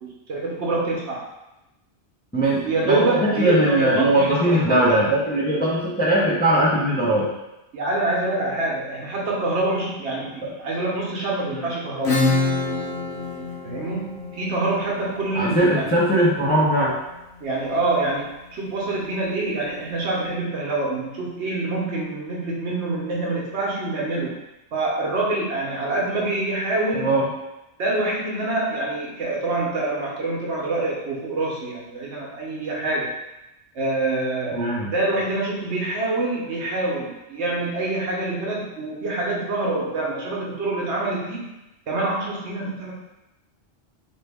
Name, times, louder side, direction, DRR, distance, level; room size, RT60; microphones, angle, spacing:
voice 1, 0.0-1.2 2.6-5.0 7.7-12.2 13.6-15.9 17.4-24.3 24.7-27.1 27.8-33.1 33.7-41.5 41.9-42.9, right 2 dB, 75° right, -3 dB, 1.1 m, -26 dB
voice 2, 2.3-7.3 11.5-11.6 15.3-17.0 26.9-27.3 34.5-34.9, right 1 dB, 10° left, -7 dB, 0.6 m, -20 dB
Acoustic guitar / Strum, 12.0-17.4, left 3 dB, 75° left, 1.0 m, -27 dB
2.9 x 2.7 x 3.4 m, 0.93 s
omnidirectional pair, 1.1 m